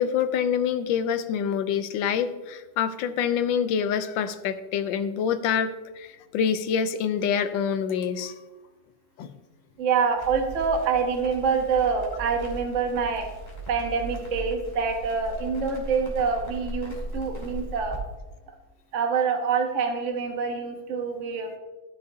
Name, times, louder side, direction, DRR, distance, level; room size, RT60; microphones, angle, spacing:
voice 1, 0.0-8.3 9.2-9.3, left 8 dB, 85° left, 11 dB, 1.3 m, -26 dB
voice 2, 9.8-13.3 13.7-18.0 18.9-21.6, right 5 dB, 50° right, 3 dB, 1.0 m, -26 dB
Crackle, 10.2-18.0, right 1 dB, 15° left, 2.3 m, -38 dB
13.5 x 6.5 x 2.7 m, 1.1 s
omnidirectional pair, 2.1 m